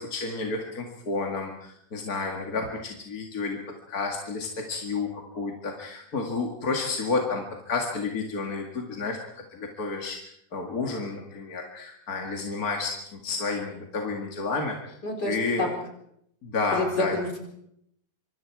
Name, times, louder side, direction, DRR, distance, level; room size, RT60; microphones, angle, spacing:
voice 1, 0.0-3.6 3.9-10.2 10.5-15.0 15.2-15.7 16.4-17.1, left 3 dB, 65° left, 1 dB, 2.6 m, -31 dB
voice 2, 15.0-15.7 16.7-17.5, left 2 dB, 85° left, 2 dB, 5.1 m, -29 dB
25.0 x 25.0 x 4.8 m, 0.73 s
omnidirectional pair, 1.7 m